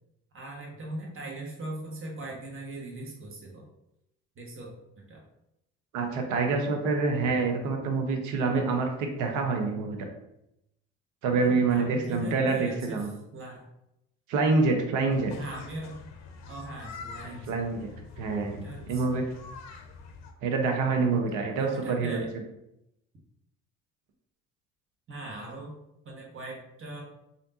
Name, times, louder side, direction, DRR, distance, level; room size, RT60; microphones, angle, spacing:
voice 1, 0.3-3.6 4.3-5.2 11.4-13.6 15.4-16.0 16.4-17.6 17.9-18.0 18.5-19.2 21.5-22.3 25.1-25.7 26.0-27.0, right 2 dB, 40° right, -2 dB, 1.1 m, -40 dB
voice 2, 5.9-10.1 11.2-13.1 14.3-15.3 17.2-17.9 18.2-19.2 20.4-22.2, right 4 dB, 70° right, 4 dB, 0.7 m, -26 dB
sound 1, 15.1-20.3, left 4 dB, 55° left, 0.6 m, -45 dB
3.3 x 2.6 x 2.6 m, 0.83 s
hypercardioid pair, 65°, 32 cm